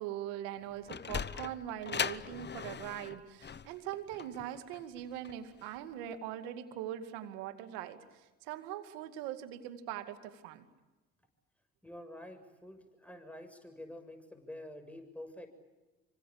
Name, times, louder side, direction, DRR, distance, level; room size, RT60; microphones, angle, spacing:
voice 1, 0.0-10.6, right 11 dB, 90° right, 9 dB, 2.3 m, -42 dB
Sliding door, 0.6-5.8, left 6 dB, 35° left, 1.0 m, -39 dB
voice 2, 11.8-15.5, left 1 dB, 5° left, 7 dB, 7.0 m, -48 dB
26.5 x 24.5 x 8.8 m, 1.1 s
supercardioid pair, 60°, 30 cm